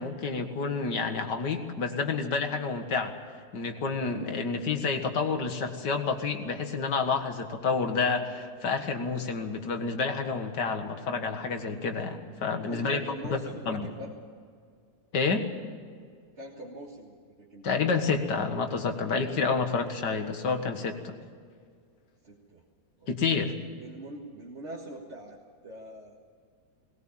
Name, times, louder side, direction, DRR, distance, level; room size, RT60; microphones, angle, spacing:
voice 1, 0.0-3.1 3.5-13.0 13.3-13.4 13.7-13.9 15.1-15.5 17.6-21.1 23.1-23.5, left 4 dB, 90° left, 5 dB, 2.3 m, -29 dB
voice 2, 12.6-14.1 16.4-17.7 22.2-22.6 23.0-23.1 23.8-26.2, right 1 dB, 40° right, -2 dB, 2.1 m, -43 dB
20.0 x 18.5 x 7.4 m, 2.1 s
omnidirectional pair, 1.8 m